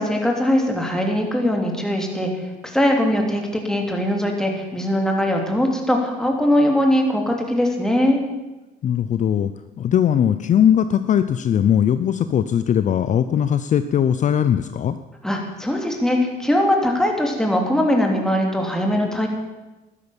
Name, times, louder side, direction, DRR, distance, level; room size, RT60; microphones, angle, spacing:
voice 1, 0.0-8.2 15.2-19.3, left 1 dB, 5° left, 1 dB, 3.1 m, -21 dB
voice 2, 8.8-15.0, left 9 dB, 45° left, 11 dB, 0.6 m, -19 dB
12.5 x 12.5 x 7.2 m, 1.1 s
cardioid pair, 110°, 17 cm